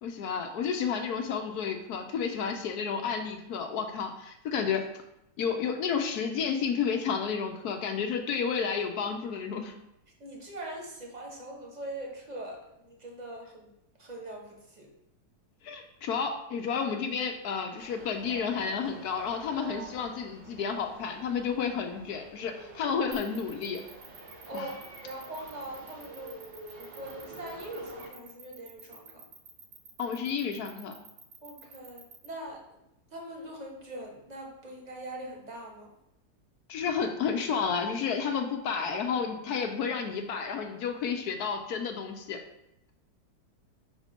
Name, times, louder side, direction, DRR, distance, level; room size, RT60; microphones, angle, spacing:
voice 1, 0.0-4.8 5.4-9.7 15.6-23.8 24.5-24.7 30.0-30.9 36.7-42.4, left 6 dB, 70° left, 5 dB, 1.0 m, -31 dB
voice 2, 10.2-12.6 13.0-13.7 14.0-14.9 24.5-24.7 25.0-26.4 26.8-29.2 31.4-32.6 33.1-35.9, right 1 dB, 30° right, 0 dB, 0.9 m, -42 dB
sound 1, 17.8-28.1, right 2 dB, 85° right, 1.9 m, -48 dB
sound 2, 23.1-32.3, right 6 dB, 65° right, 1.3 m, -50 dB
5.0 x 4.1 x 5.0 m, 0.84 s
omnidirectional pair, 1.9 m